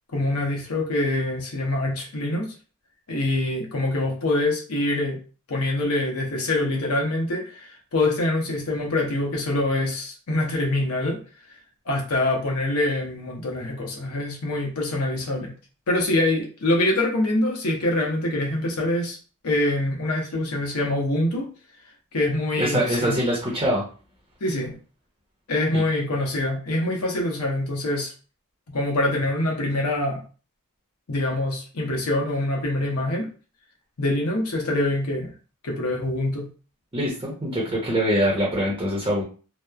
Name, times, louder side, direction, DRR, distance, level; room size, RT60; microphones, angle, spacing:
voice 1, 0.1-2.5 3.1-5.2 5.5-11.2 11.9-15.5 15.9-19.2 19.4-21.5 22.1-23.2 24.4-24.7 25.5-28.1 28.7-30.2 31.1-33.3 34.0-35.3 35.6-36.4, left 1 dB, 80° left, 1 dB, 0.8 m, -25 dB
voice 2, 22.6-23.8 25.7-25.8 36.9-39.2, equal, 20° right, -4 dB, 0.7 m, -23 dB
2.9 x 2.0 x 2.3 m, 0.37 s
head